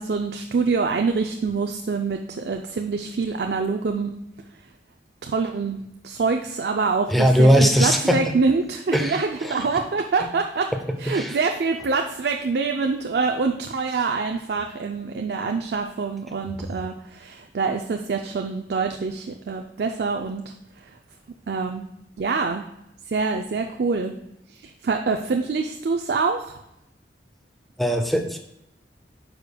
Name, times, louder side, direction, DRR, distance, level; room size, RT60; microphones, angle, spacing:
voice 1, 0.0-4.1 5.3-10.7 11.0-20.4 20.8-20.9 21.5-21.9 22.2-22.6 23.1-24.1 24.5-26.5, right 4 dB, 65° right, 4 dB, 0.4 m, -25 dB
voice 2, 7.1-8.2 8.9-9.7 10.7-11.4 16.5-16.6 27.8-28.4, equal, ahead, 4 dB, 0.6 m, -20 dB
9.3 x 5.1 x 2.2 m, 0.84 s
head